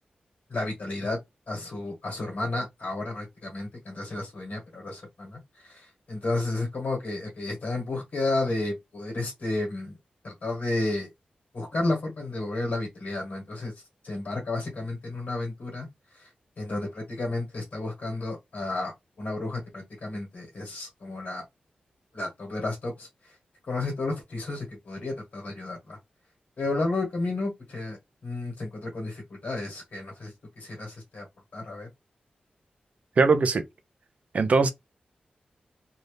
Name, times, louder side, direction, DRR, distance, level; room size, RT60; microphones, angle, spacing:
voice 1, 0.5-1.2 1.5-9.9 10.2-11.1 11.5-15.9 16.1-16.3 16.6-18.9 19.2-21.4 22.1-23.3 23.7-26.0 26.6-28.0 28.2-31.2 31.5-31.9, left 2 dB, 60° left, 1.4 m, -32 dB
voice 2, 33.2-33.6 34.3-34.7, right 4 dB, 55° right, 0.5 m, -20 dB
2.8 x 2.6 x 3.3 m
wide cardioid pair, 175°, 3 cm